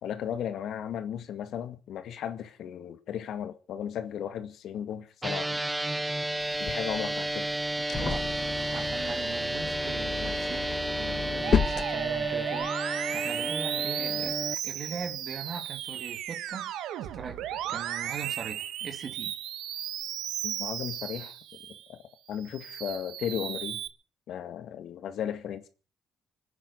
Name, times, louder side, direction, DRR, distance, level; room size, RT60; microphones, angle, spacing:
voice 1, 0.0-5.6 6.6-7.5 20.4-21.3 21.9-22.0 22.3-23.8 24.3-25.7, left 9 dB, 75° left, 1.9 m, -35 dB
sound 1, 5.2-14.5, right 1 dB, 15° right, 0.8 m, -32 dB
sound 2, 6.4-12.7, left 6 dB, 50° left, 1.4 m, -33 dB
voice 2, 7.9-8.4 8.7-12.7 13.1-16.7 17.1-19.3, right 6 dB, 50° right, 2.4 m, -40 dB
Musical instrument, 11.4-21.9 22.3-23.9, right 11 dB, 90° right, 1.3 m, -35 dB
26.0 x 9.8 x 5.4 m
cardioid pair, 90°, 0 cm